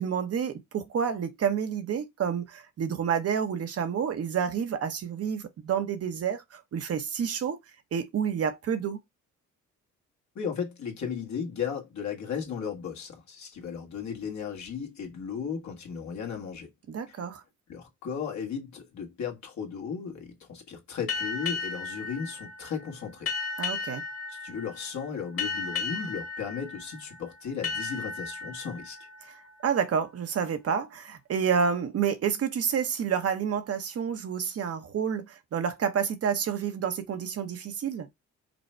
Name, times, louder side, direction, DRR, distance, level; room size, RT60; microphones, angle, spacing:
voice 1, 0.0-7.6 7.9-9.0 16.9-17.4 23.6-24.0 29.6-38.1, right 7 dB, 50° right, 0.8 m, -29 dB
voice 2, 10.3-16.7 17.1-17.2 17.7-23.3 24.3-29.0, left 7 dB, 65° left, 1.6 m, -35 dB
sound 1, 21.1-30.4, left 4 dB, 45° left, 1.7 m, -36 dB
5.2 x 2.1 x 4.4 m
cardioid pair, 90°, 30 cm